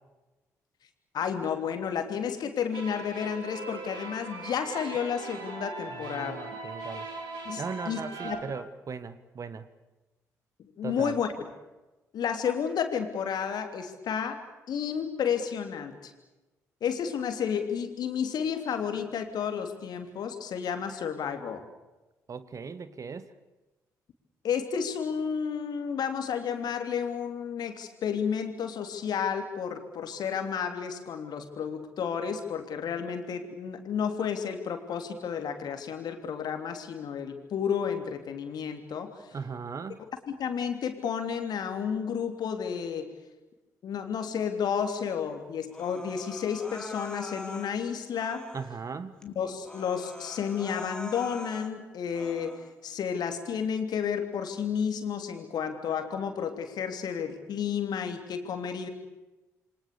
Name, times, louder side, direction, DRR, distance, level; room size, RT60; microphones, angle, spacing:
voice 1, 1.1-6.4 7.4-8.5 10.8-11.3 12.1-14.4 14.7-16.1 16.8-21.6 24.4-39.1 40.3-43.1 43.8-48.5 49.2-58.9, left 7 dB, 55° left, 6 dB, 3.2 m, -31 dB
sound 1, 2.7-8.4, right 3 dB, 65° right, 5.4 m, -40 dB
voice 2, 5.9-7.1 7.6-9.7 10.8-11.1 22.3-23.3 39.3-40.0 48.5-49.1, right 5 dB, 40° right, 14 dB, 1.6 m, -38 dB
Human voice, 45.7-47.7 48.1-48.8 49.2-49.3 49.6-51.7 52.1-52.7, left 1 dB, 10° left, 3.3 m, -43 dB
28.0 x 25.0 x 7.0 m, 1.1 s
figure-of-eight pair, 40°, 8 cm